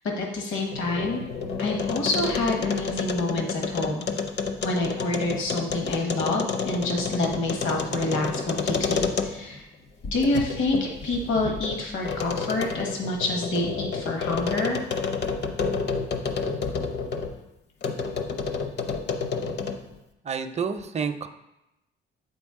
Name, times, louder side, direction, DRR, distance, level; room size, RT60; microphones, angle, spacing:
voice 1, 0.2-1.2 1.6-4.1 4.6-9.7 10.1-14.8, left 2 dB, 80° left, 1 dB, 1.1 m, -27 dB
sound 1, 0.6-9.6 10.0-17.3 17.8-19.9, left 5 dB, 60° left, 0.7 m, -30 dB
voice 2, 20.2-21.3, right 6 dB, 35° right, 8 dB, 0.5 m, -29 dB
8.0 x 4.2 x 3.6 m, 0.94 s
cardioid pair, 90°, 20 cm